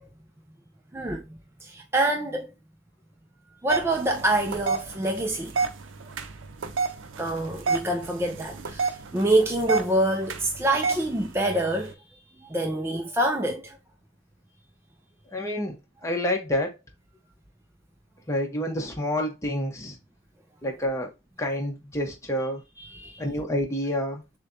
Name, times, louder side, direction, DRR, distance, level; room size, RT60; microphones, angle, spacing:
voice 1, 0.9-1.2 1.6-2.5 3.6-5.6 7.2-12.0 12.4-13.8 22.8-23.2, right 1 dB, 15° right, 0.4 m, -26 dB
sound 1, 3.7-11.9, right 4 dB, 75° right, 0.6 m, -31 dB
voice 2, 15.3-15.7 16.0-16.8 18.3-20.0 20.6-21.1 21.4-22.6 23.2-24.2, left 1 dB, 15° left, 1.0 m, -28 dB
6.6 x 2.2 x 2.7 m
head